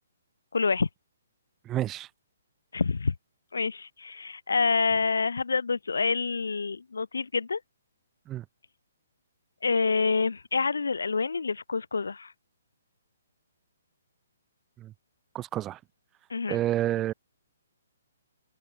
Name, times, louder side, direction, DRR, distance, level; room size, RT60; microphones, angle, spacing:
voice 1, 0.5-0.9 2.7-3.1 3.5-7.6 9.6-12.3 16.3-16.6, left 4 dB, 85° left, 1.3 m, -27 dB
voice 2, 1.6-2.1 8.3-8.4 14.8-14.9 15.3-15.8 16.5-17.1, right 13 dB, 20° right, 1.3 m, -29 dB
open air
hypercardioid pair, 145°, 0 cm